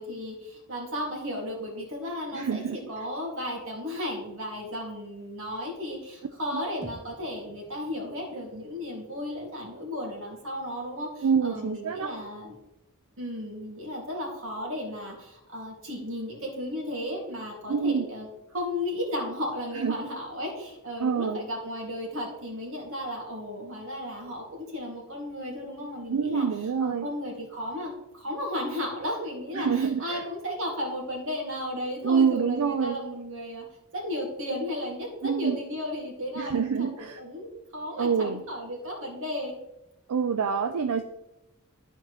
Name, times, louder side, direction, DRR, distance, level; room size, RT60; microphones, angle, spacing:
voice 1, 0.0-12.5 13.2-18.3 18.5-26.5 26.8-33.7 33.9-39.6, left 1 dB, 60° right, -1 dB, 2.3 m, -34 dB
voice 2, 2.3-2.8 6.5-6.6 11.2-12.1 17.7-18.1 19.8-20.0 21.0-21.4 26.1-27.1 29.5-30.2 32.0-33.0 35.2-35.6 36.3-37.2 38.0-38.4 40.1-41.0, right 6 dB, 85° right, 7 dB, 0.4 m, -26 dB
sound 1, 6.8-11.2, right 1 dB, 5° right, 0.7 m, -52 dB
13.0 x 4.4 x 3.1 m, 0.91 s
head